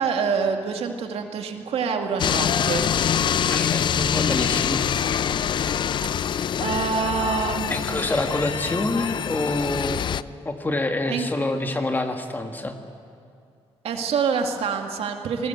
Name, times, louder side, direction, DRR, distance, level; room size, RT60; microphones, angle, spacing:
voice 1, 0.0-2.9 6.6-8.0 11.0-11.3 13.8-15.5, right 6 dB, 70° right, 4 dB, 2.3 m, -26 dB
sound 1, 2.2-10.2, left 8 dB, 45° left, 0.5 m, -25 dB
voice 2, 3.5-4.8 7.7-10.1 10.4-12.7, left 2 dB, 20° left, 5 dB, 1.8 m, -26 dB
29.0 x 20.0 x 8.1 m, 2.4 s
cardioid pair, 150°, 11 cm